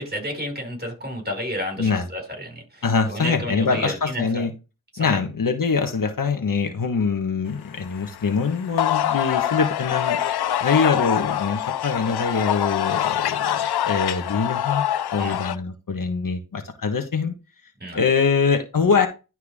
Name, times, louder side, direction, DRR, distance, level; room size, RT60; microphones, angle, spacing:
voice 1, 0.0-4.5 4.9-5.2 15.2-15.4 17.8-18.0, equal, 25° right, 2 dB, 5.7 m, -31 dB
voice 2, 2.8-4.5 5.0-10.2 10.6-14.8 15.1-17.3 17.9-19.1, left 5 dB, 60° left, 6 dB, 1.5 m, -23 dB
sound 1, 7.8-15.6, left 10 dB, 90° left, 0.6 m, -25 dB
11.5 x 4.5 x 3.7 m, 0.28 s
cardioid pair, 75°, 38 cm